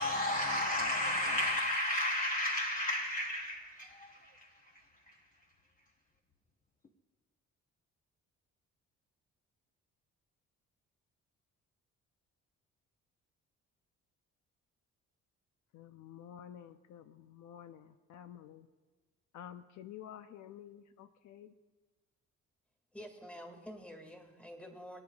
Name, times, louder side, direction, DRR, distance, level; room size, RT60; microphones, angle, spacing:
voice 1, 0.0-5.2, left 1 dB, 25° left, 0.9 m, -33 dB
voice 2, 15.7-18.7 19.3-21.5, left 10 dB, 70° left, 0.6 m, -51 dB
voice 3, 22.9-25.0, equal, 5° left, 2.0 m, -48 dB
24.5 x 8.6 x 2.4 m
cardioid pair, 90°, 30 cm